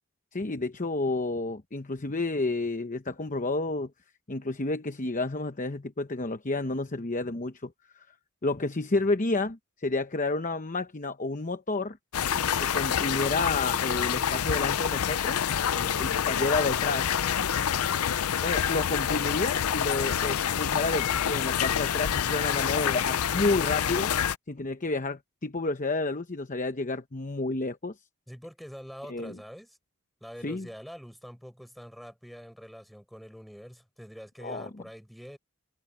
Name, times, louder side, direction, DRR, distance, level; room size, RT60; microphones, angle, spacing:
voice 1, 0.3-3.9 4.3-8.1 8.4-12.0 12.6-15.4 16.0-17.1 18.4-24.1 24.5-27.9 29.1-29.4 30.4-30.7 34.4-34.7, left 3 dB, 35° left, 0.9 m, -30 dB
sound 1, 12.1-24.4, left 8 dB, 85° left, 0.5 m, -27 dB
voice 2, 15.7-16.8 28.3-29.8 30.2-35.4, equal, ahead, 6.6 m, -45 dB
head